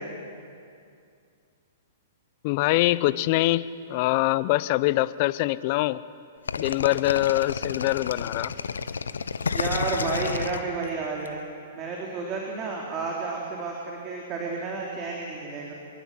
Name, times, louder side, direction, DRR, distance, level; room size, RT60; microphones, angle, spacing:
voice 1, 2.4-6.0 6.6-8.5, left 17 dB, 45° left, 17 dB, 0.8 m, -24 dB
sound 1, 6.5-11.3, left 5 dB, 85° left, 1.1 m, -30 dB
voice 2, 9.5-11.4 11.7-15.7, right 4 dB, 30° right, -1 dB, 3.9 m, -31 dB
25.5 x 22.5 x 7.8 m, 2.4 s
hypercardioid pair, 125°, 0 cm